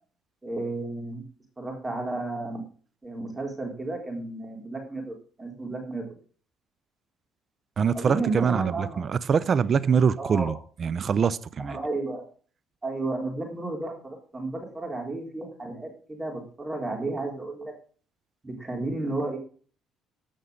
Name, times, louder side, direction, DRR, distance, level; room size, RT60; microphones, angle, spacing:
voice 1, 0.4-1.2 1.6-2.6 3.0-6.2 7.9-9.0 10.2-10.5 11.6-12.3 12.8-17.7 18.4-19.4, right 2 dB, 20° right, 3.8 m, -32 dB
voice 2, 7.8-11.8, right 6 dB, 45° right, 0.6 m, -24 dB
14.0 x 5.6 x 5.2 m
supercardioid pair, 75°, 0 cm